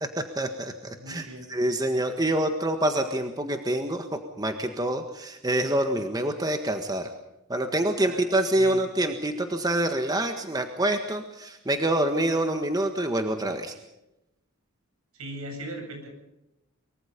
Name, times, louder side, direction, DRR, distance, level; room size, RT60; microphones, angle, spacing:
voice 1, 0.2-4.1 4.4-7.1 7.5-13.7, right 1 dB, 15° right, 6 dB, 1.6 m, -26 dB
voice 2, 1.0-1.5 8.0-8.2 8.5-8.9 15.1-16.1, right 1 dB, 80° right, 3 dB, 7.8 m, -39 dB
24.0 x 23.5 x 5.3 m, 0.89 s
head